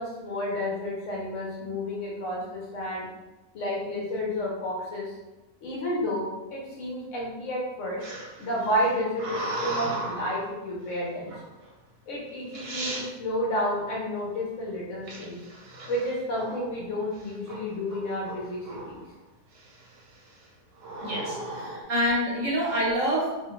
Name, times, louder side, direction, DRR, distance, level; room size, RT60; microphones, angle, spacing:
voice 1, 0.0-3.1 3.5-5.1 5.6-8.0 8.4-11.3 12.1-15.4 15.9-19.0, left 1 dB, 60° left, -3 dB, 0.9 m, -31 dB
sound 1, 8.0-10.5 11.3-11.7 12.3-12.4 12.5-13.1 15.1-16.7 17.2-17.6 17.9-19.1 19.6-20.0 20.8-21.8, right 1 dB, 80° right, 1.3 m, -36 dB
voice 2, 21.0-23.5, equal, 60° right, -5 dB, 1.0 m, -27 dB
2.8 x 2.2 x 2.9 m, 1.0 s
omnidirectional pair, 1.8 m